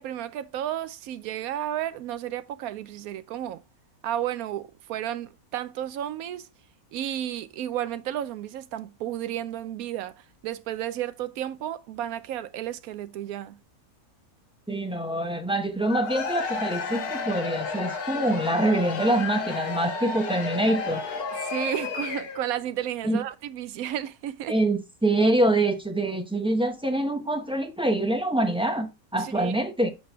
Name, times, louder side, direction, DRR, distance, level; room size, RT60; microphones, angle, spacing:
voice 1, 0.0-3.6 4.0-6.5 6.9-13.6 21.3-24.6 29.2-29.5, right 11 dB, 75° right, 1.0 m, -32 dB
voice 2, 14.7-21.0 23.0-23.2 24.5-29.9, right 1 dB, 5° right, 0.4 m, -25 dB
Cheering / Crowd, 15.8-22.5, left 4 dB, 85° left, 1.8 m, -32 dB
7.1 x 5.1 x 3.3 m
omnidirectional pair, 1.6 m